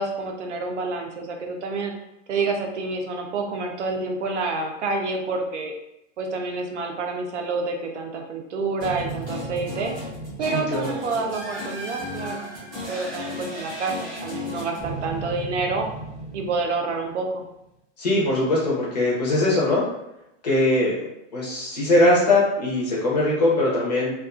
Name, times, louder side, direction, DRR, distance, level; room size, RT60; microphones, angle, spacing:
voice 1, 0.0-1.9 2.3-5.7 6.2-9.9 10.4-12.5 12.9-15.9 16.3-17.4, right 3 dB, 65° right, 3 dB, 0.6 m, -28 dB
sound 1, 8.8-17.0, equal, 15° right, 0.6 m, -34 dB
voice 2, 10.5-10.9 18.0-19.8 20.4-21.0 21.3-24.1, left 1 dB, 35° left, -5 dB, 0.6 m, -21 dB
2.4 x 2.3 x 2.4 m, 0.88 s
hypercardioid pair, 180°, 38 cm